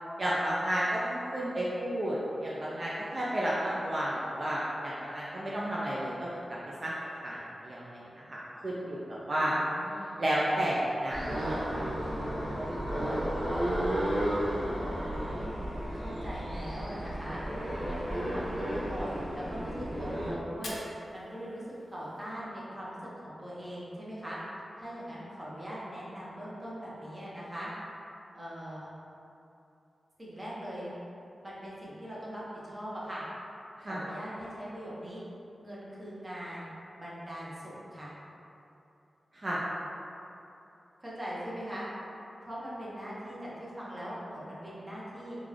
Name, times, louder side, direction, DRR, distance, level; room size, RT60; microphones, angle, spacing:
voice 1, 0.2-6.4 6.8-6.9 7.2-9.6 10.2-11.9 12.4-13.4 33.8-34.0 39.3-39.6, right 1 dB, 45° right, -6 dB, 0.4 m, -32 dB
voice 2, 9.3-10.2 15.0-15.5 15.9-17.4 17.8-20.8 21.1-21.6 21.9-23.0 23.2-24.4 24.8-27.7 28.3-28.9 30.2-30.9 31.4-33.2 33.8-35.2 35.6-38.1 41.0-41.9 42.4-45.4, equal, 25° right, -8 dB, 1.0 m, -41 dB
sound 1, 11.1-20.3, equal, 70° right, 1.1 m, -33 dB
Fire, 20.5-22.5, left 2 dB, 80° left, 0.5 m, -47 dB
3.7 x 2.4 x 3.1 m, 2.9 s
cardioid pair, 60°, 0 cm